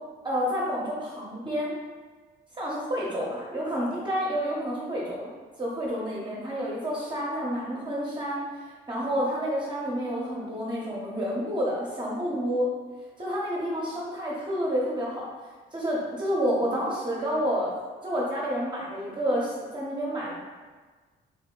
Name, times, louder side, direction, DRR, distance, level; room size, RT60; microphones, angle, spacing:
voice 1, 0.2-1.7 2.6-5.3 5.6-8.4 8.9-12.7 13.2-15.3 15.7-17.7 18.0-20.3, equal, 25° right, -5 dB, 0.7 m, -29 dB
3.5 x 2.1 x 3.6 m, 1.4 s
cardioid pair, 90°, 20 cm